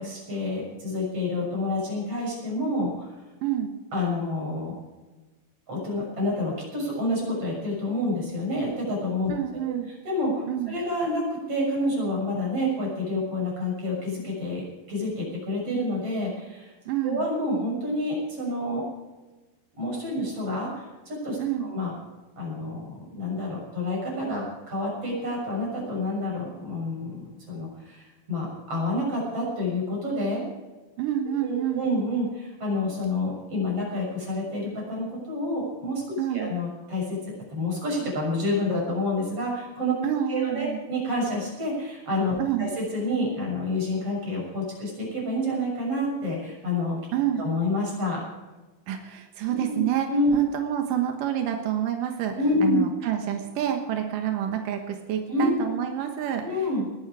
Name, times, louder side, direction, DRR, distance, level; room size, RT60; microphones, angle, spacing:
voice 1, 0.0-3.1 3.9-4.7 5.7-9.3 9.6-9.7 10.0-10.3 10.7-11.2 11.5-16.7 17.0-18.8 19.8-21.9 22.4-22.9 23.2-30.5 31.4-37.2 37.5-40.0 40.3-47.0 47.4-48.2 49.5-49.8 50.1-50.3 52.4-52.8 55.3-55.7 56.4-56.8, left 1 dB, 30° right, -2 dB, 7.4 m, -28 dB
voice 2, 3.4-3.7 9.3-9.9 10.5-10.8 16.9-17.3 21.4-21.7 31.0-31.8 36.2-36.5 40.0-40.8 42.4-42.7 47.1-47.4 48.9-52.3 52.6-56.9, right 10 dB, 75° right, 4 dB, 2.0 m, -28 dB
20.0 x 13.0 x 4.9 m, 1.2 s
omnidirectional pair, 5.7 m